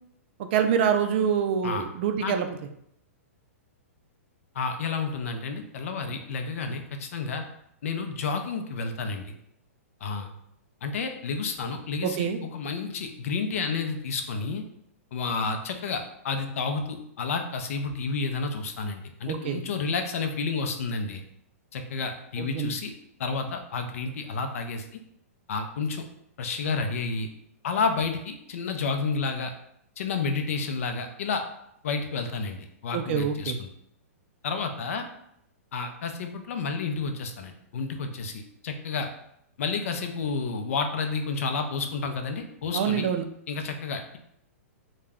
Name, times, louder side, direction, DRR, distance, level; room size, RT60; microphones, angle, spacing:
voice 1, 0.5-2.5 12.0-12.4 19.3-19.6 22.4-22.7 32.9-33.6 42.7-43.2, right 8 dB, 50° right, 7 dB, 0.3 m, -25 dB
voice 2, 4.5-7.4 7.8-9.3 10.0-10.3 10.8-12.3 12.5-14.6 15.1-21.2 21.7-22.9 23.2-24.9 25.5-26.0 26.4-27.3 27.6-29.5 30.0-31.4 31.8-33.7 34.4-35.0 35.7-39.1 39.6-43.1 43.5-44.2, left 4 dB, 70° left, 6 dB, 0.5 m, -30 dB
2.3 x 2.1 x 3.4 m, 0.74 s
hypercardioid pair, 135°, 8 cm